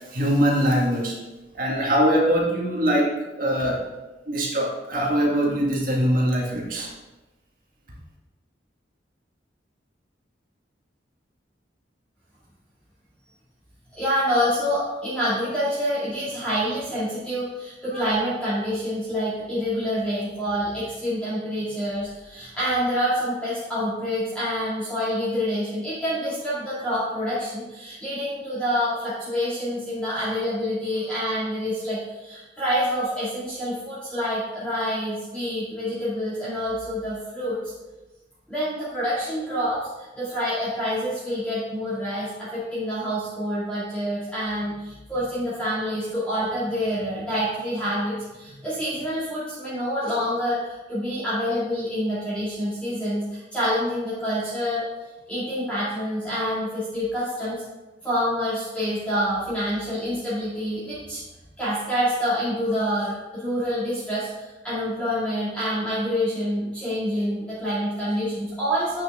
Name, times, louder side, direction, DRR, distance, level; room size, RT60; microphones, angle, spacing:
voice 1, 0.1-1.1 1.5-3.1 3.4-3.8 4.3-6.9, equal, 50° right, -3 dB, 1.9 m, -22 dB
voice 2, 14.0-37.6 38.5-39.9 40.2-54.8 55.3-57.6 58.0-61.2 61.6-69.0, equal, 5° left, -11 dB, 2.3 m, -27 dB
8.6 x 6.4 x 3.6 m, 1.1 s
head